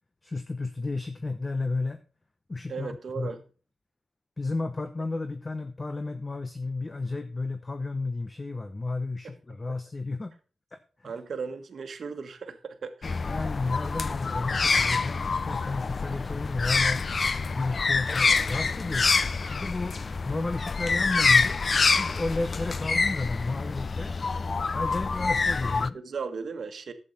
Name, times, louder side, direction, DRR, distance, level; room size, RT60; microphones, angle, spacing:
voice 1, 0.2-2.0 2.5-3.3 4.4-10.3 10.7-11.1 13.2-17.0 17.5-19.1 19.5-20.0 20.2-24.2 24.7-26.0, left 3 dB, 25° left, 0.8 m, -32 dB
voice 2, 2.7-3.4 11.0-13.2 14.1-14.2 25.9-26.9, right 5 dB, 60° right, 1.5 m, -36 dB
sound 1, 13.0-25.9, left 4 dB, 40° left, 0.4 m, -26 dB
11.5 x 7.9 x 4.1 m
wide cardioid pair, 115°, 0 cm